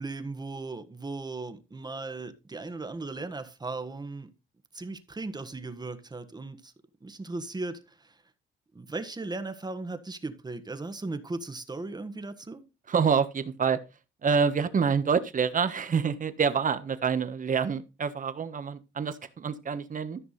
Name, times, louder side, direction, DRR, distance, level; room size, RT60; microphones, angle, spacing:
voice 1, 0.0-4.3 4.7-6.7 7.0-8.1 8.7-12.6, right 3 dB, 20° right, 1.5 m, -37 dB
voice 2, 12.9-13.8 14.2-20.2, right 6 dB, 40° right, 1.4 m, -27 dB
14.0 x 6.0 x 4.2 m
cardioid pair, 90°, 20 cm